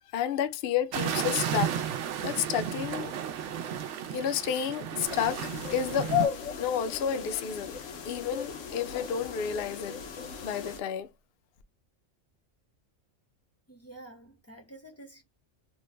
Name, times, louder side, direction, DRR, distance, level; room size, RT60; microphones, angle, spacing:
voice 1, 0.1-1.8 2.2-3.1 4.1-6.1 6.6-7.8 8.1-10.0 10.4-11.1, left 8 dB, 60° left, 0.7 m, -31 dB
sound 1, 0.9-6.3, right 9 dB, 75° right, 0.9 m, -33 dB
sound 2, 5.0-10.8, left 9 dB, 90° left, 1.1 m, -35 dB
voice 2, 13.7-15.2, right 2 dB, 15° left, 0.5 m, -49 dB
3.1 x 2.1 x 3.3 m
omnidirectional pair, 1.3 m